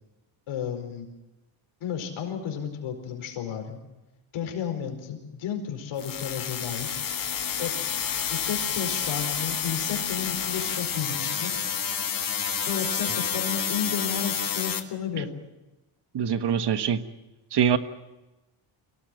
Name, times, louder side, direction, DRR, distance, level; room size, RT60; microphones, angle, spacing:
voice 1, 0.5-1.1 1.8-3.8 4.3-7.0 7.6-7.7 8.3-11.6 12.7-15.3, left 8 dB, 85° left, 4 dB, 4.7 m, -32 dB
sound 1, 6.0-14.8, left 7 dB, 45° left, 1.7 m, -29 dB
voice 2, 16.1-17.0 17.5-17.8, right 8 dB, 55° right, 10 dB, 1.5 m, -23 dB
24.0 x 17.5 x 9.1 m, 1.0 s
cardioid pair, 110°, 47 cm